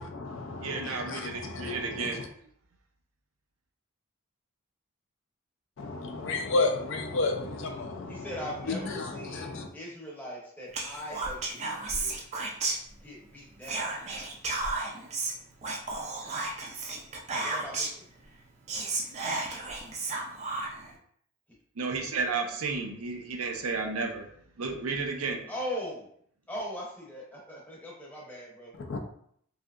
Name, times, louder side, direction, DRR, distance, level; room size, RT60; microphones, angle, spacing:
voice 1, 0.0-2.3 5.8-8.4 8.7-9.7 28.8-29.0, left 3 dB, 55° left, 4 dB, 0.4 m, -32 dB
voice 2, 0.6-2.2 21.8-24.3 24.6-25.4, right 4 dB, 80° right, 3 dB, 0.5 m, -32 dB
voice 3, 8.1-12.1 12.9-14.0 17.3-18.1 25.5-26.1 26.5-28.7, equal, 10° left, -4 dB, 0.7 m, -40 dB
Whispering, 10.7-13.3 13.6-18.1 18.4-18.5 18.7-20.9, right 3 dB, 30° right, 0.4 m, -33 dB
3.2 x 2.7 x 2.4 m, 0.65 s
head